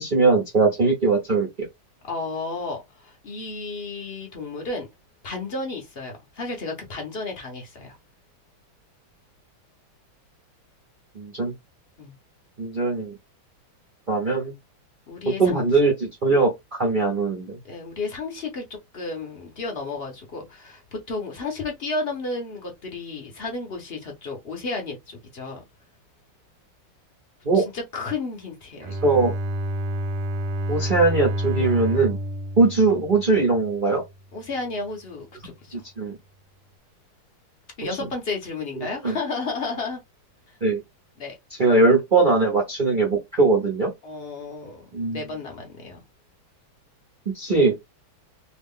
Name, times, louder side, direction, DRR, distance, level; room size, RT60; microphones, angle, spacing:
voice 1, 0.0-1.7 11.1-11.5 12.6-13.1 14.1-14.5 15.4-17.6 27.4-27.6 29.0-29.3 30.7-32.2 32.6-34.0 35.7-36.2 38.8-39.2 40.6-40.8 41.6-43.9 44.9-45.2 47.3-47.7, right 3 dB, 65° right, 0.4 m, -21 dB
voice 2, 2.0-4.9 5.2-8.0 12.0-12.1 15.1-15.6 17.6-18.6 18.9-25.6 27.5-28.9 34.3-35.8 37.8-40.0 41.2-41.4 44.0-44.8 45.1-46.0, left 3 dB, 55° left, 0.6 m, -32 dB
Bowed string instrument, 28.8-33.8, equal, 90° right, 1.4 m, -29 dB
3.0 x 2.4 x 3.5 m
omnidirectional pair, 2.2 m